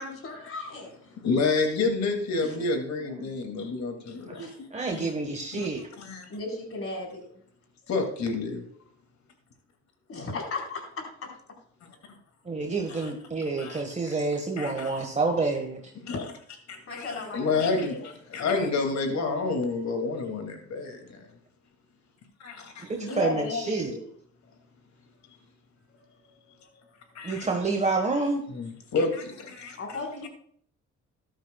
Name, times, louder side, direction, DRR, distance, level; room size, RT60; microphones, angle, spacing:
voice 1, 0.0-1.3 2.4-2.6 4.4-4.5 6.3-7.2 10.1-10.8 16.1-16.2 16.9-18.1 18.4-18.7 19.1-19.7 23.0-24.1 25.9-26.0 26.6-26.7 29.8-30.3, left 3 dB, 50° left, 1 dB, 4.5 m, -36 dB
voice 2, 1.2-5.1 5.5-5.7 6.0-6.3 7.9-8.6 12.9-13.1 13.6-13.8 14.6-15.1 16.0-16.2 16.7-21.3 22.4-22.9 27.1-27.5 28.5-29.8, left 3 dB, 65° left, 5 dB, 2.6 m, -29 dB
voice 3, 4.7-5.8 12.5-15.8 22.9-23.9 27.2-28.4, right 3 dB, 25° right, 2 dB, 1.5 m, -28 dB
13.5 x 12.0 x 2.4 m, 0.62 s
cardioid pair, 90°, 30 cm